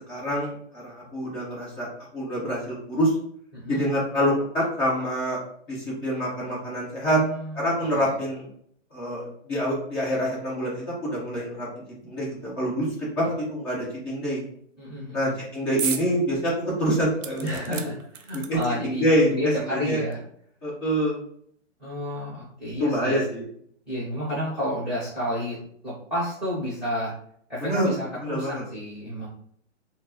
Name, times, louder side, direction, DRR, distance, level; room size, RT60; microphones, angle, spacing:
voice 1, 0.0-3.1 3.7-5.4 5.7-7.2 7.5-8.5 8.9-12.3 12.6-14.4 15.1-17.9 18.5-20.0 20.6-21.2 22.8-23.4 27.6-27.9 28.2-28.6, equal, 20° left, -6 dB, 1.0 m, -26 dB
voice 2, 7.0-7.6 7.9-8.1 14.8-15.3 17.4-17.9 18.2-20.2 21.8-23.2 23.9-25.6 25.8-27.1 27.5-29.3, left 1 dB, ahead, -16 dB, 0.7 m, -31 dB
sound 1, 15.8-16.1 16.5-16.6 17.2-18.9 19.8-19.9 20.1-20.2, right 8 dB, 80° right, 0.6 m, -33 dB
4.3 x 2.0 x 2.8 m, 0.65 s
hypercardioid pair, 160°, 37 cm